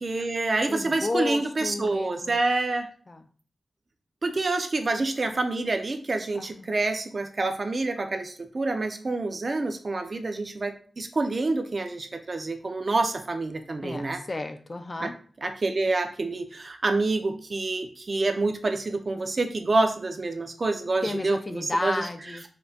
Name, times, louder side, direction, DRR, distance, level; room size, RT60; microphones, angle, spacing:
voice 1, 0.0-2.9 4.2-14.2 15.0-15.1 15.4-22.1, right 3 dB, 40° right, 6 dB, 0.5 m, -27 dB
voice 2, 0.7-2.4 3.1-3.2 6.3-6.7 13.8-15.1 21.0-22.4, left 2 dB, 30° left, 8 dB, 0.3 m, -32 dB
5.0 x 2.2 x 2.7 m, 0.43 s
wide cardioid pair, 135°, 0 cm